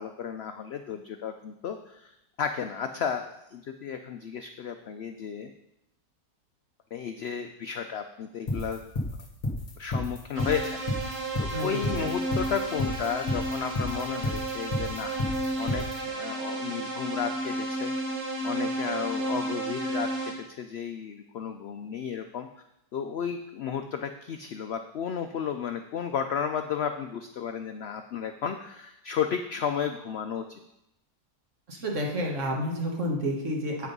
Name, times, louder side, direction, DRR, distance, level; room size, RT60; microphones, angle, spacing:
voice 1, 0.0-5.5 6.9-8.8 9.8-15.2 15.6-17.9 18.4-22.5 22.9-30.6, left 7 dB, 75° left, 7 dB, 0.5 m, -33 dB
sound 1, 8.5-16.0, left 1 dB, 30° left, 1.4 m, -30 dB
sound 2, 10.3-20.3, right 2 dB, 65° right, 2.0 m, -32 dB
voice 2, 31.7-33.9, equal, 50° right, 0 dB, 1.7 m, -30 dB
8.5 x 6.0 x 5.3 m, 0.84 s
omnidirectional pair, 1.7 m